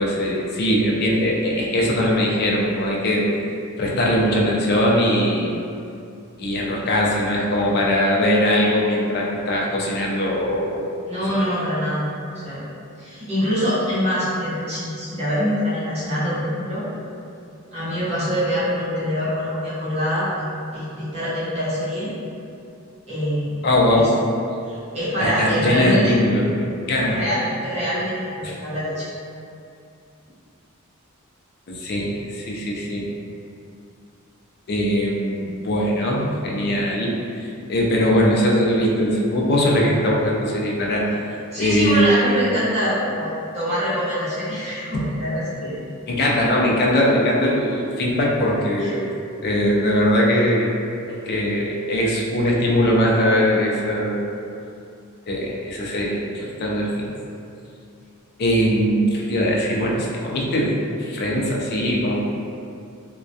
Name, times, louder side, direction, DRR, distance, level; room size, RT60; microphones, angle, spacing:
voice 1, 0.0-3.3 3.8-5.6 6.4-10.8 23.6-24.1 25.2-27.2 28.4-28.6 31.7-33.1 34.7-41.0 41.5-42.3 44.9-45.0 46.1-49.1 49.4-50.7 51.1-54.3 55.3-57.1 58.4-62.3, equal, 50° left, -3 dB, 0.4 m, -21 dB
voice 2, 11.1-12.0 12.3-12.6 13.0-16.8 17.7-20.5 20.7-22.1 23.1-23.7 23.9-24.0 24.7-26.1 27.0-28.3 28.6-29.1 41.5-45.8 48.8-48.9, equal, 30° right, -11 dB, 0.8 m, -24 dB
2.2 x 2.1 x 2.6 m, 2.5 s
head